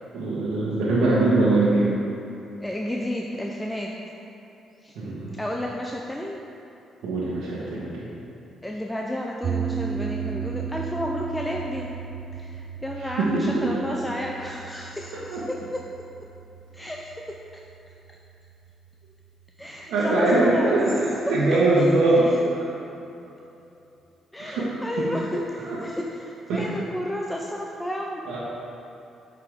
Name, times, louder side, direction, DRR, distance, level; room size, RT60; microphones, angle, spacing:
voice 1, 0.1-1.9 4.9-5.3 7.0-8.1 13.0-13.7 15.3-15.4 19.9-22.6 24.4-24.7 25.0-25.1 25.6-25.8 26.5-26.7 28.2-28.4, right 2 dB, 85° right, -7 dB, 1.2 m, -22 dB
voice 2, 2.6-3.9 4.8-4.9 5.4-6.4 8.6-12.0 12.3-15.8 16.7-17.1 19.6-20.8 21.3-21.9 24.3-28.4, left 1 dB, 10° left, -1 dB, 0.5 m, -32 dB
sound 1, 9.4-19.7, right 6 dB, 50° right, 0.3 m, -35 dB
8.2 x 4.9 x 3.6 m, 2.9 s
cardioid pair, 90°, 0 cm